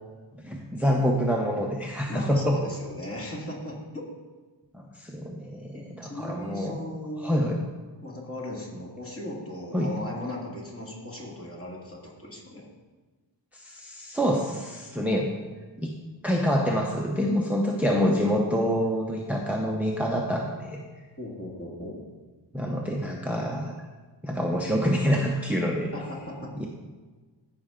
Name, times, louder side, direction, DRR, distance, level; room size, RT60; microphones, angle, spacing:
voice 1, 0.4-2.6 4.7-6.8 7.2-7.6 9.7-9.9 13.5-15.3 15.8-15.9 16.2-20.8 22.5-23.7 24.2-25.9 26.6-26.7, equal, 5° right, 0 dB, 0.7 m, -26 dB
voice 2, 2.1-4.0 5.7-7.5 8.0-12.6 21.2-22.0 25.9-26.5, left 1 dB, 30° left, -3 dB, 2.1 m, -37 dB
14.0 x 5.6 x 3.7 m, 1.3 s
wide cardioid pair, 125°, 45 cm